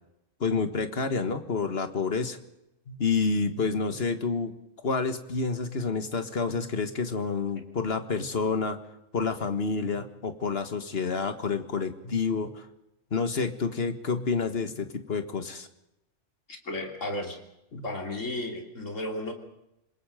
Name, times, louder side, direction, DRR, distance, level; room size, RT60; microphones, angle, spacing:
voice 1, 0.4-2.4 2.9-4.5 4.8-8.8 9.1-12.7 13.1-15.7 17.7-17.8, left 4 dB, 55° left, 9 dB, 1.8 m, -29 dB
voice 2, 16.5-17.4 17.8-19.3, left 1 dB, 85° left, 3 dB, 3.6 m, -34 dB
27.0 x 21.5 x 5.1 m, 0.89 s
omnidirectional pair, 1.3 m